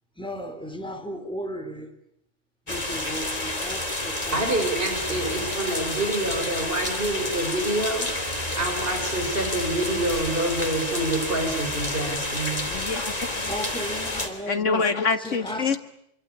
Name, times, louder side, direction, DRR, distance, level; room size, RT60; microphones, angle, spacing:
voice 1, 0.2-1.9 2.7-4.7 5.1-5.5 13.5-14.9 15.2-15.8, equal, 5° left, 4.1 m, -35 dB
sound 1, 2.7-14.3, left 1 dB, 30° left, 3.4 m, -30 dB
voice 2, 4.3-8.2 8.5-12.7, right 1 dB, 50° right, 5.6 m, -27 dB
voice 3, 12.7-13.5 14.1-15.8, left 4 dB, 80° left, 2.1 m, -26 dB
26.5 x 25.0 x 8.7 m
omnidirectional pair, 1.2 m